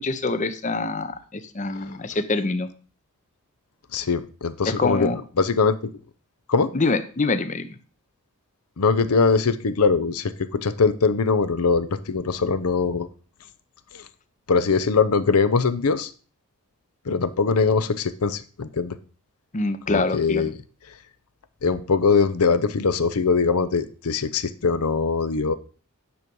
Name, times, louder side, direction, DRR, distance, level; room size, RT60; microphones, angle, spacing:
voice 1, 0.0-2.7 4.7-5.2 6.7-7.8 19.5-20.4, left 3 dB, 35° left, 11 dB, 0.6 m, -25 dB
voice 2, 3.9-5.1 5.4-5.9 6.5-6.7 8.8-13.1 13.9-14.0 14.5-16.1 17.1-19.0 19.9-20.5 21.6-25.6, left 4 dB, 85° left, 13 dB, 0.7 m, -22 dB
9.5 x 6.2 x 5.3 m, 0.38 s
head